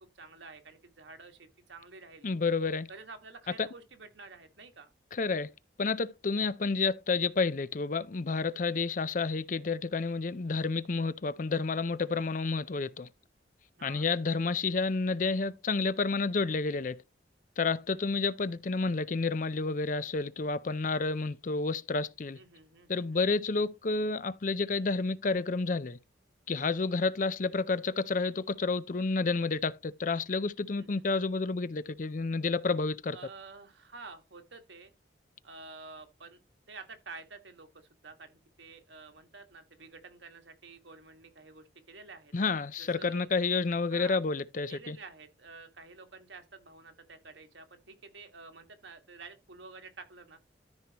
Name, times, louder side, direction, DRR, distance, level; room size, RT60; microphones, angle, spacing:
voice 1, 0.1-2.3 2.9-4.9 13.8-14.1 22.3-23.3 30.7-31.0 33.1-34.9 35.4-36.4 36.7-42.3 42.8-43.3 43.9-44.2 44.7-50.4, right 4 dB, 85° right, 1.7 m, -50 dB
voice 2, 2.2-2.9 3.6-3.7 5.1-5.5 5.8-13.1 13.8-17.0 17.6-22.4 22.9-26.0 26.5-33.2 42.3-45.0, left 4 dB, 45° left, 0.5 m, -30 dB
13.5 x 4.6 x 2.9 m
head